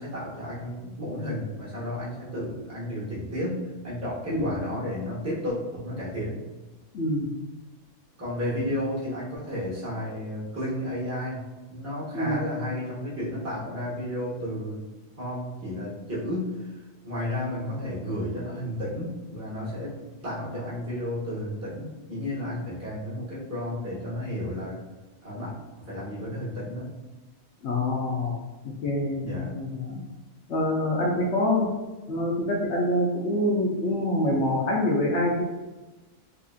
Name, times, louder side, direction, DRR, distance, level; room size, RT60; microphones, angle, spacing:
voice 1, 0.0-6.4 8.2-11.4 11.7-14.8 15.2-16.7 17.0-24.8 25.2-25.5 25.8-26.9 29.2-29.5, left 1 dB, 10° right, -8 dB, 1.1 m, -32 dB
voice 2, 6.9-7.3 12.1-12.4 27.6-28.3 28.8-30.0 30.5-31.7 32.1-35.4, left 1 dB, 65° left, -2 dB, 0.8 m, -25 dB
3.9 x 2.8 x 2.4 m, 1.2 s
omnidirectional pair, 1.4 m